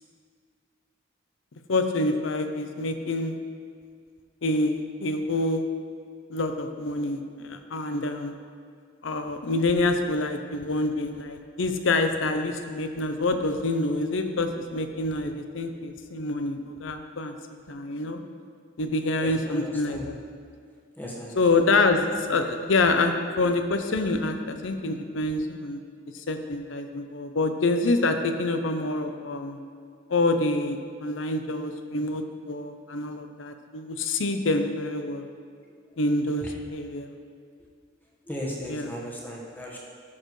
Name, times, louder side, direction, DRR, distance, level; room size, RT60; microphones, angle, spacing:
voice 1, 1.7-3.4 4.4-5.7 6.3-8.4 9.0-17.3 17.7-18.2 18.8-20.2 21.4-25.8 26.1-29.6 30.1-35.2 36.0-37.1 38.7-38.9, left 2 dB, 80° left, 7 dB, 0.7 m, -26 dB
voice 2, 19.2-20.1 21.0-21.4 36.4-36.5 38.3-39.8, equal, 10° left, -4 dB, 1.3 m, -36 dB
13.0 x 6.6 x 3.2 m, 2.1 s
head